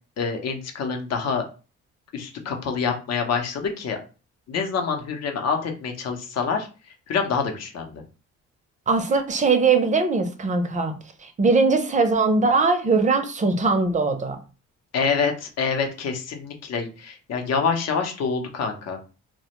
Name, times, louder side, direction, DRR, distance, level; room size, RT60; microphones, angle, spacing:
voice 1, 0.2-1.5 2.1-4.0 4.5-6.7 7.1-8.0 14.9-19.0, left 5 dB, 60° left, 4 dB, 0.7 m, -26 dB
voice 2, 8.9-10.9 11.4-14.4, right 4 dB, 25° right, 7 dB, 0.5 m, -20 dB
2.1 x 2.1 x 2.9 m, 0.34 s
cardioid pair, 90°, 30 cm